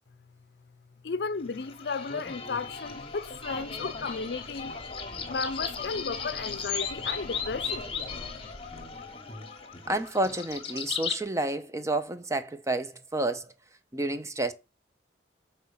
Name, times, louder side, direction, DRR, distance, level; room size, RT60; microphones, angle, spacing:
voice 1, 1.0-4.8 5.3-7.9, left 4 dB, 60° left, 0.5 m, -34 dB
sound 1, 1.5-11.2, left 5 dB, 30° left, 1.2 m, -36 dB
voice 2, 9.9-13.5 13.9-14.5, right 2 dB, 15° right, 0.6 m, -30 dB
7.3 x 4.3 x 5.6 m
head